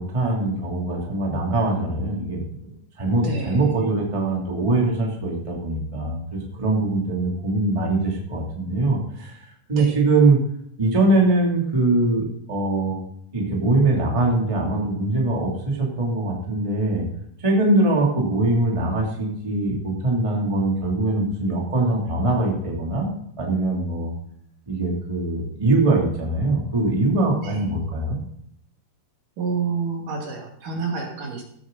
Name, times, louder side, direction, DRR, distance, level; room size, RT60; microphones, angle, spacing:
voice 1, 0.0-2.4 3.0-9.4 9.7-10.4 10.8-13.0 13.3-17.0 17.4-23.1 23.4-24.1 24.7-28.2, right 2 dB, 10° right, -2 dB, 2.1 m, -22 dB
voice 2, 3.2-3.9 9.8-9.9 27.4-27.7 29.4-31.4, right 5 dB, 60° right, 0 dB, 3.5 m, -29 dB
16.0 x 8.1 x 4.0 m, 0.69 s
omnidirectional pair, 4.5 m